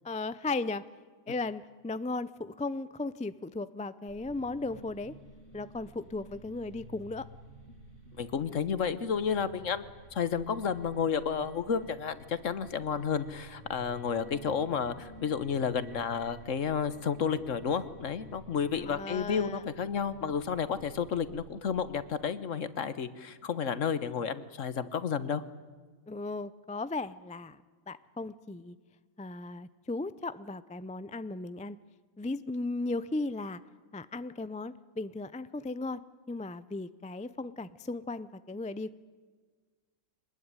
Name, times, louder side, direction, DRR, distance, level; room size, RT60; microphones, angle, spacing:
voice 1, 0.0-0.8 1.3-5.1 5.5-7.2 18.8-19.6 26.1-27.6 27.9-28.8 29.2-31.8 32.2-33.6 33.9-36.0 36.3-38.9, left 3 dB, 10° left, 15 dB, 0.3 m, -36 dB
sound 1, 4.1-22.0, right 1 dB, 50° right, 6.8 m, -52 dB
voice 2, 8.2-9.8 10.1-25.4, left 6 dB, 65° left, 14 dB, 1.5 m, -31 dB
25.0 x 20.0 x 9.7 m, 1.4 s
omnidirectional pair, 1.4 m